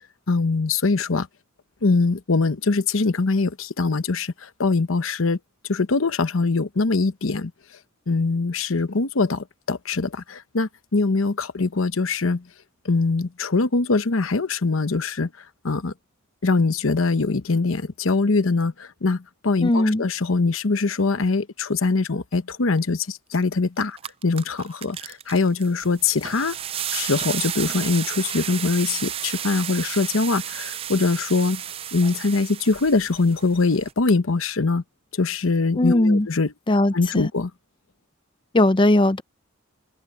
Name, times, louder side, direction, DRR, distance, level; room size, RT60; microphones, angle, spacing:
voice 1, 0.3-1.3 1.8-5.4 5.7-7.5 8.1-12.4 12.8-15.3 15.6-15.9 16.4-24.0 24.2-26.6 26.9-31.6 31.9-34.8 35.1-36.5 36.9-37.5, left 3 dB, 80° left, 0.9 m, -22 dB
voice 2, 19.6-20.0 35.7-36.3 36.7-37.3 38.5-39.2, left 1 dB, 25° left, 0.6 m, -19 dB
sound 1, 23.4-23.5 23.8-33.9, right 10 dB, 30° right, 0.4 m, -32 dB
open air
head